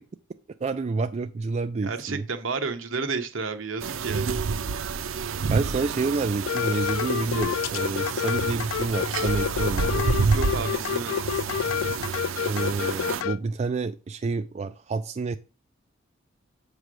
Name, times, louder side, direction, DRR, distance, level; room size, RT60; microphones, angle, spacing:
voice 1, 0.6-2.2 5.5-10.0 12.4-15.4, right 4 dB, 35° right, 0.3 m, -28 dB
voice 2, 1.8-4.4 10.3-11.3, right 4 dB, 75° right, 1.0 m, -31 dB
sound 1, 3.8-13.2, right 5 dB, 90° right, 0.5 m, -29 dB
sound 2, 6.5-13.4, left 9 dB, 90° left, 0.3 m, -28 dB
7.6 x 3.3 x 6.1 m
head